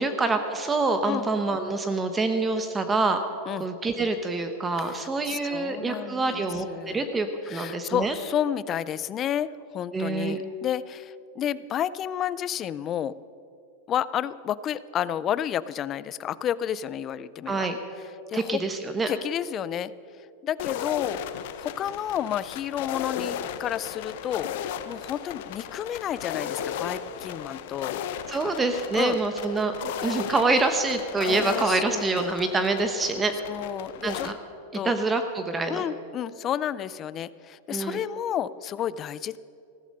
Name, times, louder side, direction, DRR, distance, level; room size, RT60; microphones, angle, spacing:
voice 1, 0.0-3.2 3.6-8.1 9.9-10.4 17.5-17.8 18.3-19.1 28.3-33.3 34.0-34.3 34.8-35.8 37.7-38.0, right 3 dB, 15° right, 7 dB, 0.9 m, -26 dB
voice 2, 4.8-6.4 6.7-7.1 7.5-13.1 13.9-17.7 18.3-18.6 19.0-19.9 20.4-21.2 21.6-24.5 24.9-28.0 28.4-28.5 29.0-29.2 31.2-32.2 33.5-34.3 34.7-35.0 35.7-39.4, left 10 dB, 30° left, 18 dB, 0.4 m, -31 dB
sound 1, 20.6-34.3, left 9 dB, 65° left, 0.8 m, -35 dB
15.0 x 13.5 x 5.3 m, 2.6 s
supercardioid pair, 140°, 0 cm